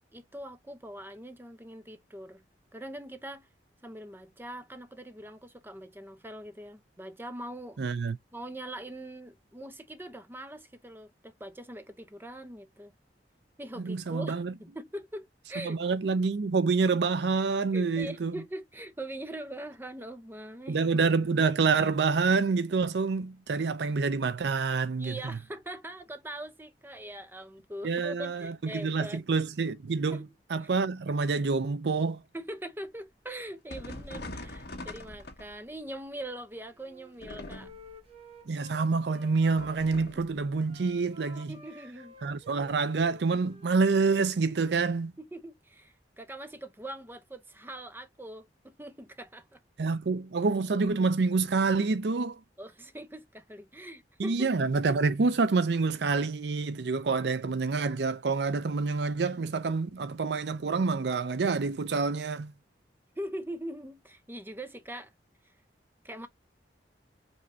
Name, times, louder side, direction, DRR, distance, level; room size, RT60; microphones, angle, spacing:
voice 1, 0.1-2.4 2.7-3.5 3.8-7.8 8.3-12.9 13.6-15.8 17.7-20.8 25.0-29.2 30.1-30.2 30.6-30.7 32.3-37.7 40.2-40.3 41.3-42.1 45.2-49.6 52.6-54.5 63.2-65.1 65.4-65.5 66.0-66.3, right 1 dB, 10° right, 0.7 m, -42 dB
voice 2, 7.8-8.2 13.8-14.5 15.6-18.3 20.7-25.2 27.8-30.2 30.5-32.2 38.5-41.5 42.2-45.1 49.8-52.4 54.2-62.5, right 4 dB, 65° right, 0.5 m, -27 dB
sound 1, 33.7-35.8 37.2-38.0 39.6-40.3, left 1 dB, 60° left, 1.7 m, -42 dB
Wind instrument woodwind instrument, 36.7-40.0 40.6-44.2, equal, 35° right, 1.7 m, -52 dB
5.3 x 3.1 x 2.7 m
head